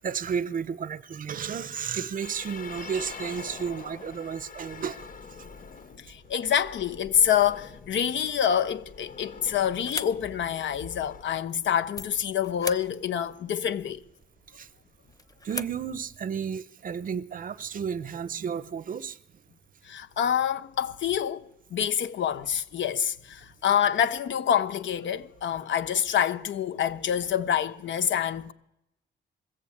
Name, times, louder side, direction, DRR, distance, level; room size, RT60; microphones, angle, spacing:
voice 1, 0.0-5.1 14.6-14.7 15.4-19.2, right 7 dB, 45° right, 0.7 m, -32 dB
sound 1, 2.2-11.2, left 5 dB, 45° left, 0.9 m, -45 dB
voice 2, 6.1-14.0 19.8-28.5, left 9 dB, 75° left, 1.0 m, -27 dB
sound 2, 9.5-16.3, left 2 dB, 20° left, 0.7 m, -42 dB
21.5 x 15.0 x 8.6 m
cardioid pair, 130°, 19 cm